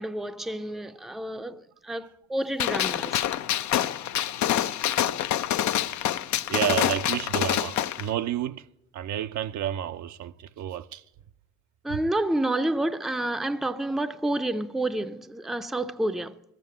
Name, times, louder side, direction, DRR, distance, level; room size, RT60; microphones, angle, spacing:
voice 1, 0.0-3.2 11.8-16.4, right 1 dB, ahead, 0.5 m, -29 dB
Gunshot gunfire, 2.6-8.0, left 11 dB, 70° left, 0.6 m, -26 dB
voice 2, 6.5-8.7 8.9-11.0 11.9-12.0, right 11 dB, 70° right, 0.6 m, -30 dB
13.0 x 7.7 x 7.8 m
cardioid pair, 90°, 30 cm